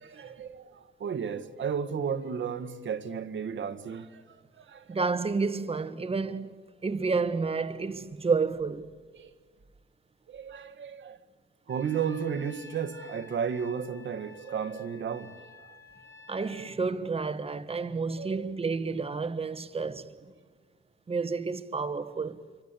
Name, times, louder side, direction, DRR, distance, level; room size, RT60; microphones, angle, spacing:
voice 1, 0.0-5.0 9.1-9.3 10.3-11.2 11.7-15.7 18.2-18.5, right 7 dB, 70° right, 1.8 m, -34 dB
voice 2, 4.9-6.5 6.8-8.9 16.3-20.1 21.1-22.4, right 4 dB, 30° right, 1.5 m, -30 dB
Trumpet, 11.7-16.8, left 4 dB, 15° left, 2.1 m, -52 dB
28.0 x 25.0 x 8.4 m
wide cardioid pair, 130°, 20 cm